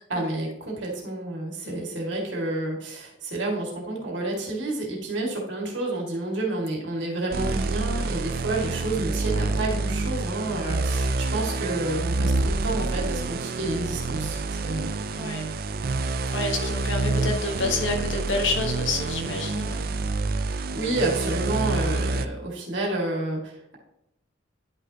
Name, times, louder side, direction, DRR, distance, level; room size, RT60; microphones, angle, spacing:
voice 1, 0.1-12.3 12.6-14.9 20.5-23.8, right 2 dB, 70° right, -1 dB, 2.2 m, -29 dB
voice 2, 1.6-2.0 15.2-15.5 16.3-19.9, left 3 dB, 75° left, 3 dB, 1.3 m, -29 dB
sound 1, 7.3-22.3, right 3 dB, 50° right, 0.4 m, -27 dB
10.5 x 5.8 x 2.9 m, 0.85 s
head